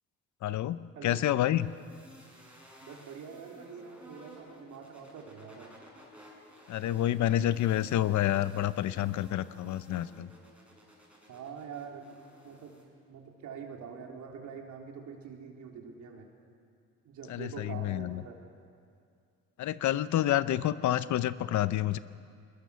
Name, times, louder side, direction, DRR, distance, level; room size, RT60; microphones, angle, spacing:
voice 1, 0.4-1.7 6.7-10.3 17.3-18.2 19.6-22.0, left 12 dB, 70° left, 15 dB, 0.7 m, -28 dB
sound 1, 1.5-12.8, equal, 5° right, 6.1 m, -55 dB
voice 2, 2.8-5.7 11.3-12.0 12.4-12.8 13.1-16.3 17.0-18.4, right 6 dB, 75° right, 1 dB, 3.3 m, -45 dB
21.5 x 20.5 x 7.0 m, 2.3 s
cardioid pair, 90°, 30 cm